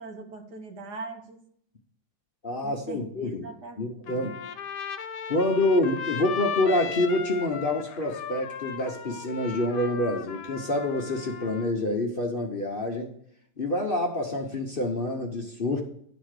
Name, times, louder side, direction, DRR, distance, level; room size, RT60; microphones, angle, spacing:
voice 1, 0.0-1.4 2.6-4.3, right 3 dB, 70° right, 4 dB, 1.8 m, -41 dB
voice 2, 2.4-3.5 3.8-4.4 5.3-13.1 13.6-15.8, left 2 dB, 40° left, 1 dB, 1.0 m, -27 dB
Trumpet, 4.1-11.7, left 7 dB, 80° left, 1.3 m, -36 dB
11.0 x 4.2 x 6.5 m, 0.66 s
omnidirectional pair, 1.8 m